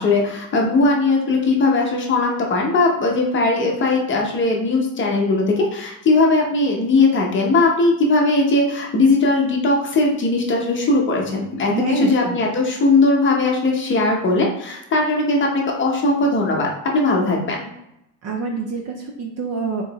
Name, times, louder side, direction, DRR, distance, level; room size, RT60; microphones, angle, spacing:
voice 1, 0.0-17.6, left 3 dB, 25° left, 0 dB, 0.7 m, -19 dB
voice 2, 11.7-12.5 18.2-19.8, right 4 dB, 35° right, 1 dB, 0.4 m, -26 dB
4.7 x 3.9 x 2.9 m, 0.84 s
cardioid pair, 165°, 48 cm